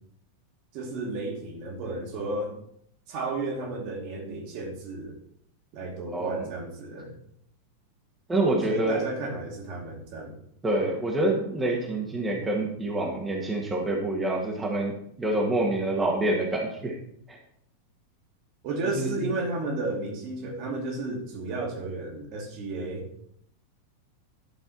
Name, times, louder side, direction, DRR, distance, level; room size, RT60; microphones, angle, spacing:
voice 1, 0.7-2.6 3.1-5.1 5.7-7.1 8.7-10.4 18.6-23.1, right 2 dB, 45° right, 0 dB, 2.4 m, -33 dB
voice 2, 8.3-9.0 10.6-14.9 15.2-16.9 17.3-17.4 19.0-19.1, right 2 dB, 15° right, -2 dB, 1.8 m, -26 dB
11.5 x 5.4 x 4.4 m, 0.68 s
figure-of-eight pair, 90°, 0 cm